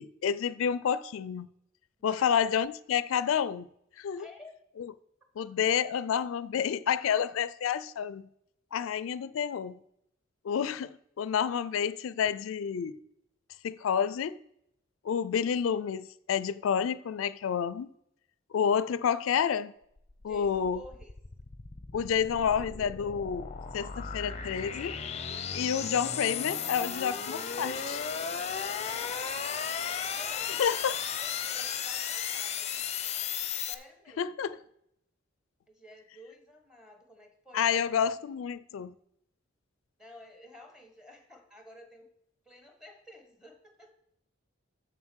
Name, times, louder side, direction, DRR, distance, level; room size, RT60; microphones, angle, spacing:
voice 1, 0.0-1.5 2.0-3.7 4.0-4.3 4.8-4.9 5.4-8.3 8.7-9.8 10.4-13.0 13.6-14.4 15.0-17.9 18.5-19.7 20.2-20.8 21.9-25.0 25.5-28.0 30.6-30.9 34.2-34.6 37.5-38.9, left 7 dB, 90° left, 0.4 m, -29 dB
voice 2, 2.0-2.3 4.1-4.5 20.3-21.1 28.8-29.3 30.0-30.6 31.2-33.0 33.7-34.3 35.7-37.8 40.0-42.1 42.4-43.9, left 1 dB, 5° right, 1.4 m, -52 dB
sound 1, 20.0-33.7, left 7 dB, 35° left, 0.6 m, -35 dB
7.3 x 6.8 x 6.2 m
head